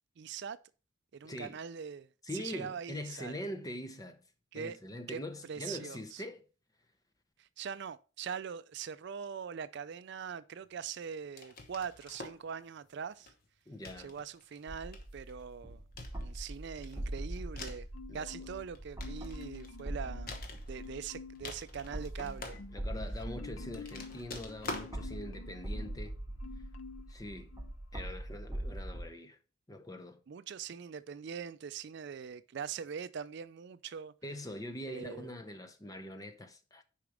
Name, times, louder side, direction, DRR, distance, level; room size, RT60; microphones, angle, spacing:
voice 1, 0.2-0.6 1.1-2.1 2.3-3.3 4.5-4.8 5.1-5.2 5.5-6.2 7.4-13.3 14.0-15.8 16.2-17.9 18.1-20.4 20.7-22.7 30.3-34.1 34.9-35.3, right 7 dB, 55° right, 0.4 m, -42 dB
voice 2, 1.2-1.6 2.2-4.2 4.5-6.4 13.7-14.1 18.1-18.3 22.7-26.1 27.1-27.5 27.9-29.4 29.7-30.2 34.2-36.8, left 1 dB, 15° left, 0.7 m, -43 dB
sound 1, 11.4-12.5 13.2-13.4 13.8-14.6 14.9-15.4 16.0-17.9 18.6-19.8 20.3-21.1 21.3-23.0 23.7-24.9, left 3 dB, 45° left, 1.1 m, -46 dB
sound 2, 14.7-29.1, right 1 dB, 15° right, 1.0 m, -42 dB
Marimba xylophone, 17.9-18.7 19.0-20.4 20.8-21.5 21.9-26.0 26.4-27.1 27.5-27.7, left 4 dB, 65° left, 0.6 m, -50 dB
6.5 x 5.0 x 4.9 m
head